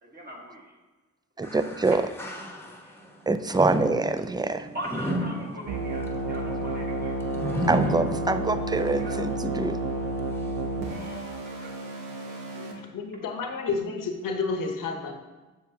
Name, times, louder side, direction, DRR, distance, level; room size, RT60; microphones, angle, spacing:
voice 1, 0.0-0.8 2.8-3.0 4.7-7.3 9.0-9.2 10.8-11.9 12.2-12.9, right 1 dB, 30° right, -3 dB, 1.7 m, -41 dB
sound 1, 1.4-3.0 3.5-8.8 9.2-9.3 10.2-10.3, equal, 10° left, 1.0 m, -32 dB
voice 2, 1.4-2.0 3.3-4.7 7.7-9.8, right 3 dB, 15° right, 11 dB, 0.4 m, -25 dB
sound 2, 5.7-12.7, right 1 dB, 90° right, 1.0 m, -31 dB
voice 3, 12.8-15.1, left 4 dB, 85° left, 4 dB, 1.0 m, -30 dB
7.1 x 6.5 x 2.8 m, 1.2 s
cardioid pair, 60°, 32 cm